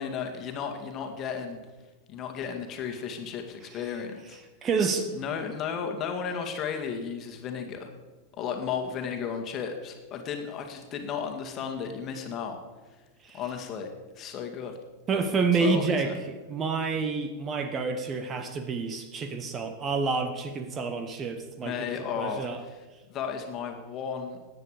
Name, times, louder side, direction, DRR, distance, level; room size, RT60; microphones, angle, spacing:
voice 1, 0.0-1.6 2.1-4.4 5.1-7.9 8.4-12.6 13.3-13.9 14.2-14.7 15.6-16.1 21.6-22.8 23.1-24.4, left 7 dB, 30° left, 4 dB, 2.1 m, -34 dB
voice 2, 4.6-5.1 13.2-13.4 15.1-16.1 16.5-21.7 22.2-22.6, right 4 dB, 25° right, 8 dB, 1.2 m, -28 dB
17.0 x 10.0 x 5.1 m, 1.3 s
figure-of-eight pair, 90°, 0 cm